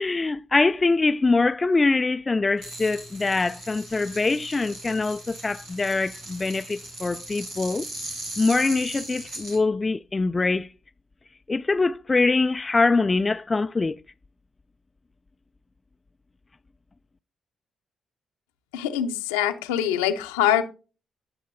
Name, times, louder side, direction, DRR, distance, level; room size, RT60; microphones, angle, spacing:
voice 1, 0.0-7.9 8.4-10.7 11.5-14.0, left 3 dB, 30° left, 0.3 m, -23 dB
sound 1, 2.6-9.6, right 1 dB, 80° right, 6.2 m, -39 dB
voice 2, 18.7-20.6, left 10 dB, 85° left, 0.7 m, -24 dB
15.5 x 6.6 x 2.6 m
hypercardioid pair, 40°, 0 cm